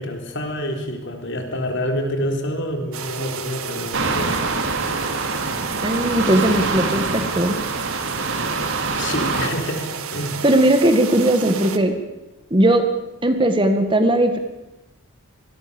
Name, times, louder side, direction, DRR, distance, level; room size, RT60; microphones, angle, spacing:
voice 1, 0.0-4.5 4.8-5.0 9.0-10.4, equal, 55° left, 4 dB, 4.3 m, -27 dB
sound 1, 2.9-11.8, right 6 dB, 75° right, 2.0 m, -32 dB
sound 2, 3.9-9.5, right 3 dB, 60° right, 3.0 m, -25 dB
voice 2, 5.8-7.6 10.4-12.0 12.5-12.9 13.2-14.4, right 1 dB, 25° right, 7 dB, 2.0 m, -18 dB
26.5 x 21.0 x 7.2 m, 0.98 s
head